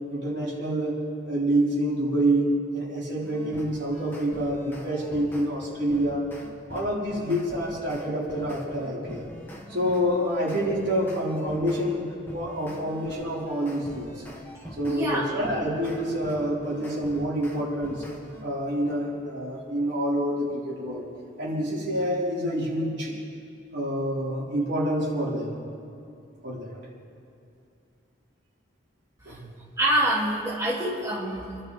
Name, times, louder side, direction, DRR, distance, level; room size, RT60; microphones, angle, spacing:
voice 1, 0.1-1.0 1.2-6.2 6.7-9.3 9.7-14.2 14.8-18.0 18.4-21.0 21.4-23.1 23.7-25.6 26.4-26.8 29.3-29.4, equal, 65° right, -6 dB, 4.3 m, -27 dB
sound 1, 3.2-5.5 5.9-11.8 12.3-15.0 15.4-18.4, equal, 10° left, 1.6 m, -43 dB
voice 2, 14.8-15.3 15.6-15.7 29.3-31.6, right 1 dB, 15° right, -7 dB, 2.5 m, -27 dB
27.5 x 12.0 x 3.4 m, 2.6 s
head